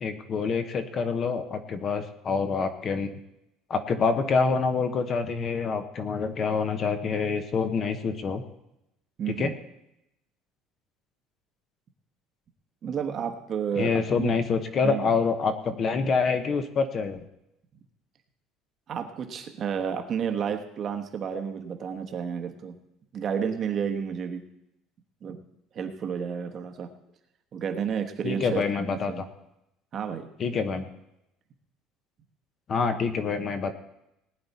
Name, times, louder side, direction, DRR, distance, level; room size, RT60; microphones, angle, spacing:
voice 1, 0.0-3.1 3.7-8.4 9.4-9.5 13.8-17.2 28.2-29.1 30.4-30.8 32.7-33.7, left 5 dB, 30° left, 8 dB, 1.0 m, -26 dB
voice 2, 9.2-9.5 12.8-14.4 14.8-15.1 18.9-22.8 23.1-24.4 25.2-25.4 25.7-26.9 27.5-29.3 29.9-30.3, right 7 dB, 30° right, 6 dB, 1.1 m, -31 dB
19.0 x 9.7 x 4.2 m, 0.83 s
cardioid pair, 170°, 0 cm